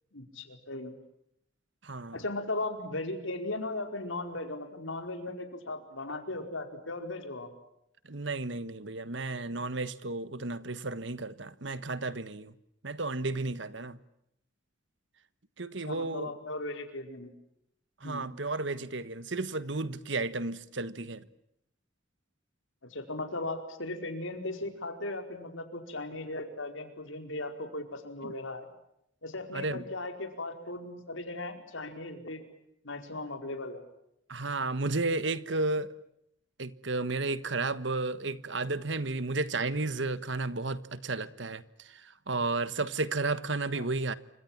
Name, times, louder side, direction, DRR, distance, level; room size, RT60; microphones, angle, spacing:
voice 1, 0.1-0.9 2.1-7.5 15.8-17.3 18.0-18.3 22.8-28.7 29.2-32.4 32.8-33.8 43.7-43.9, left 2 dB, 85° left, 4.9 m, -37 dB
voice 2, 1.8-2.2 8.0-12.5 12.8-14.0 15.6-16.3 18.0-21.2 28.2-28.3 29.5-29.8 34.3-35.9 36.6-44.2, right 3 dB, 65° right, 1.5 m, -33 dB
28.5 x 26.0 x 7.5 m
head